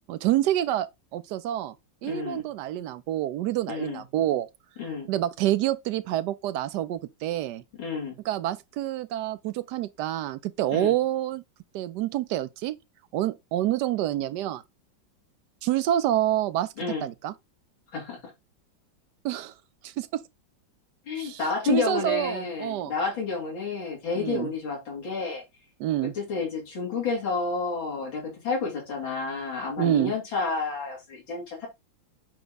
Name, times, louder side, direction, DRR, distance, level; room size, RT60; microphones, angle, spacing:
voice 1, 0.1-1.7 2.0-4.5 5.1-7.6 8.2-11.4 11.7-12.8 13.1-14.6 15.6-16.7 17.0-17.3 19.2-19.5 19.8-20.2 21.2-21.4 21.6-22.9 24.2-24.5 25.8-26.1 29.8-30.1, right 13 dB, 75° right, 1.0 m, -27 dB
voice 2, 2.0-2.4 3.7-4.0 4.8-5.1 7.8-8.2 10.7-10.9 16.8-17.1 17.9-18.2 21.1-25.4 26.0-31.7, left 4 dB, 80° left, 4.0 m, -30 dB
9.3 x 3.4 x 3.9 m
omnidirectional pair, 2.1 m